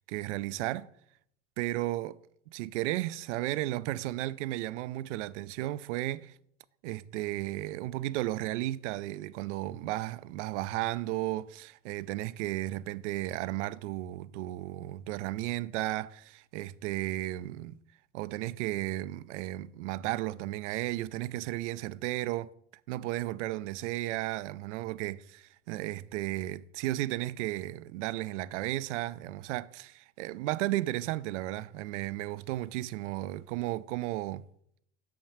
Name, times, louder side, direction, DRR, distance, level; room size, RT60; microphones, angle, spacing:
voice 1, 0.1-0.9 1.6-2.2 2.5-6.3 6.8-17.8 18.1-22.5 22.9-34.4, right 16 dB, 70° right, 0.5 m, -34 dB
6.2 x 5.9 x 6.6 m
hypercardioid pair, 100°, 37 cm